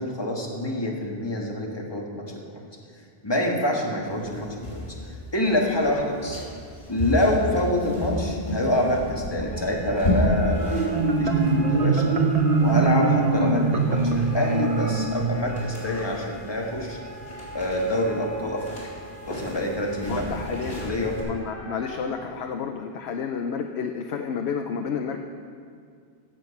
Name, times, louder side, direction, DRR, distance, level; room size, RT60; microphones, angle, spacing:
voice 1, 0.0-2.6 3.2-6.4 6.9-12.2 12.6-17.0 17.5-18.8 19.2-20.2 20.7-21.2, left 1 dB, 25° left, -1 dB, 1.7 m, -27 dB
sound 1, 4.1-21.2, left 1 dB, 45° left, 3.6 m, -33 dB
sound 2, 9.5-22.1, right 1 dB, 65° left, 2.3 m, -43 dB
Marimba xylophone, 10.6-16.1, right 3 dB, 40° right, 0.8 m, -22 dB
voice 2, 20.1-20.8 21.2-25.2, left 6 dB, 90° left, 5 dB, 0.9 m, -30 dB
15.0 x 7.5 x 5.9 m, 2.2 s
omnidirectional pair, 1.1 m